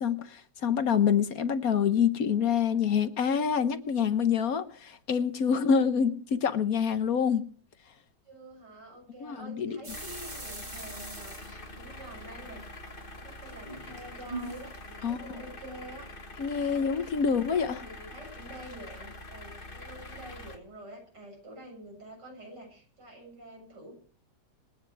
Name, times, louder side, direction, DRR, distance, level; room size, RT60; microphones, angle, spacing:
voice 1, 0.0-7.4 9.2-9.8 15.0-15.2 16.4-17.8, left 7 dB, 60° left, 1.4 m, -26 dB
voice 2, 8.2-12.8 13.2-16.1 16.7-23.9, right 1 dB, 80° right, 8.2 m, -47 dB
sound 1, 9.8-12.3 12.6-14.9, right 2 dB, 25° right, 3.7 m, -42 dB
sound 2, 9.9-20.6, left 2 dB, 30° left, 2.1 m, -45 dB
26.5 x 9.5 x 4.7 m
omnidirectional pair, 1.8 m